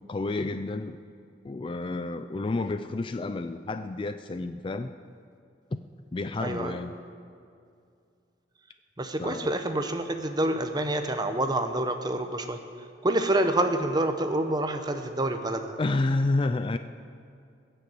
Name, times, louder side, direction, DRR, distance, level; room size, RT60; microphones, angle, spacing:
voice 1, 0.1-1.0 1.4-4.9 5.7-5.8 6.1-6.9 9.2-9.5 15.8-16.8, left 2 dB, 25° left, 10 dB, 0.3 m, -30 dB
voice 2, 6.4-6.8 9.0-12.6 13.0-15.8, right 1 dB, 20° right, 7 dB, 0.8 m, -27 dB
20.0 x 6.7 x 7.7 m, 2.4 s
head